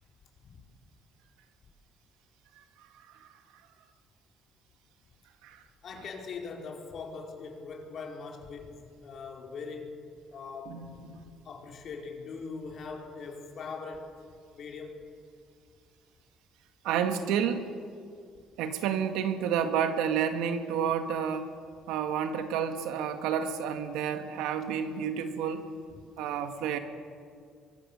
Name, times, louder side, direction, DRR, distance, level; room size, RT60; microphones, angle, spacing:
voice 1, 5.8-10.0 10.3-10.9 11.4-14.1 14.5-15.0, left 4 dB, 60° left, 1 dB, 4.5 m, -41 dB
voice 2, 10.7-11.2 16.8-17.7 18.6-21.5 21.9-25.7 26.2-26.8, right 8 dB, 85° right, 7 dB, 2.0 m, -30 dB
24.0 x 23.0 x 6.8 m, 2.3 s
supercardioid pair, 80°, 0 cm